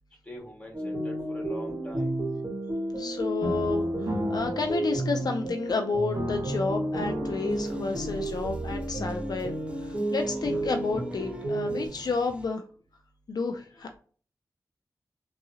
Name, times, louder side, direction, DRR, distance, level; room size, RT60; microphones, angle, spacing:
voice 1, 0.3-2.1 13.5-13.9, left 1 dB, 15° left, -2 dB, 1.8 m, -44 dB
sound 1, 0.7-11.9, right 1 dB, 45° right, 1.7 m, -32 dB
voice 2, 3.0-12.6 13.3-14.0, left 4 dB, 65° left, 4 dB, 0.4 m, -31 dB
sound 2, 3.4-5.8 6.1-8.4, equal, 65° right, 1.2 m, -36 dB
sound 3, 7.5-12.5, right 1 dB, 15° right, 0.6 m, -44 dB
3.5 x 3.0 x 2.7 m, 0.42 s
wide cardioid pair, 70°, 7 cm